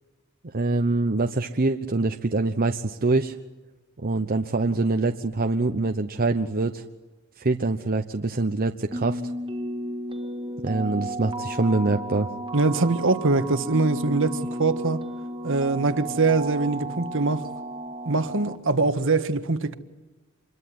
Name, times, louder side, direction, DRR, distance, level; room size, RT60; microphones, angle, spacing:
voice 1, 0.5-3.4 4.0-6.8 7.4-9.2 10.6-12.3, right 3 dB, 45° right, 0.9 m, -24 dB
sound 1, 8.9-18.6, right 1 dB, 25° right, 1.7 m, -33 dB
voice 2, 12.5-15.0 15.4-17.5 18.0-19.7, right 3 dB, 65° right, 1.5 m, -23 dB
27.0 x 22.0 x 9.5 m
head